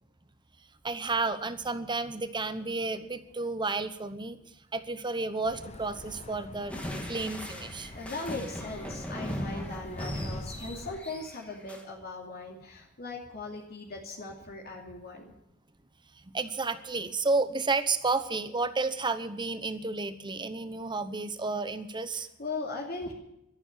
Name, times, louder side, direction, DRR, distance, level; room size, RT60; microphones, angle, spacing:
voice 1, 0.8-4.4 4.7-6.8 7.0-7.9 16.3-22.3, right 3 dB, 20° right, 12 dB, 0.9 m, -31 dB
sound 1, 5.4-11.0, left 2 dB, 30° left, 0.9 m, -46 dB
sound 2, 6.7-11.8, equal, 5° left, 2.0 m, -39 dB
voice 2, 7.8-15.3 22.1-23.1, left 3 dB, 45° left, -3 dB, 2.8 m, -39 dB
12.5 x 11.0 x 9.2 m, 0.82 s
head